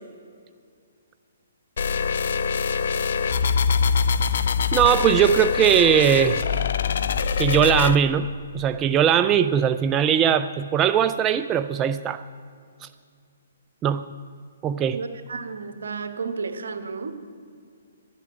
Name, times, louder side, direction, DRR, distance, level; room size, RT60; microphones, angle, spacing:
sound 1, 1.8-8.0, left 6 dB, 65° left, 0.5 m, -23 dB
voice 1, 4.7-6.4 7.4-8.3 8.5-12.2 12.8-12.9 13.8-14.0 14.6-15.0, right 9 dB, 20° right, 10 dB, 0.3 m, -20 dB
voice 2, 14.9-17.1, right 4 dB, 70° right, 9 dB, 1.3 m, -32 dB
12.0 x 8.1 x 9.4 m, 2.2 s
hypercardioid pair, 140°, 0 cm